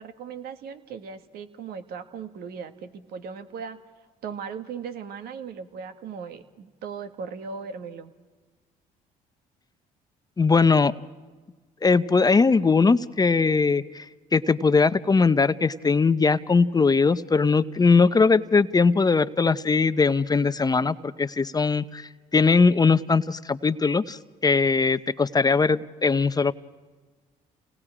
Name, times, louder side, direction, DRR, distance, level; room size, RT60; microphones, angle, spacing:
voice 1, 0.0-3.8 4.2-8.1, right 6 dB, 70° right, 8 dB, 1.7 m, -38 dB
voice 2, 10.4-10.9 11.8-14.0 14.3-26.5, left 4 dB, 25° left, 13 dB, 0.7 m, -20 dB
29.5 x 19.0 x 5.0 m, 1.3 s
supercardioid pair, 75°, 17 cm